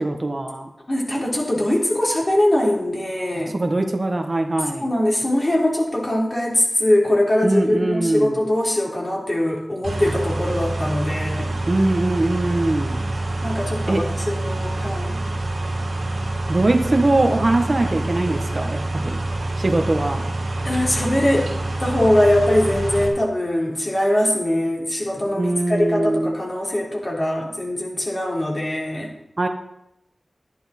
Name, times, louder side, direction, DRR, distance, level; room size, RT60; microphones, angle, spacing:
voice 1, 0.0-0.7 3.5-4.8 7.4-8.4 11.7-13.0 13.9-14.0 16.5-19.2 19.6-20.2 25.4-26.3 29.4-29.5, right 2 dB, 50° right, 5 dB, 1.3 m, -21 dB
voice 2, 0.9-3.6 4.6-11.5 13.4-15.2 20.6-21.5 21.8-29.1, left 1 dB, 40° left, -3 dB, 3.8 m, -22 dB
sound 1, 9.8-23.1, right 2 dB, 80° right, 2.5 m, -26 dB
10.5 x 10.5 x 4.4 m, 0.82 s
cardioid pair, 45°, 0 cm